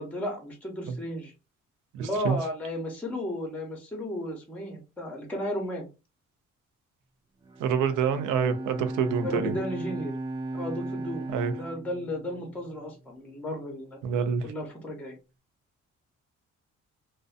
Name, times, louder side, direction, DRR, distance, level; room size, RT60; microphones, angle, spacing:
voice 1, 0.0-1.3 2.0-5.9 9.2-10.2 10.5-14.0 14.4-15.1, left 1 dB, 5° left, 0.7 m, -34 dB
voice 2, 1.9-2.4 7.6-9.5 11.3-11.5 14.0-14.5, right 6 dB, 90° right, 0.5 m, -27 dB
Bowed string instrument, 7.4-12.9, right 2 dB, 15° right, 0.3 m, -37 dB
2.5 x 2.1 x 2.4 m
cardioid pair, 90°, 30 cm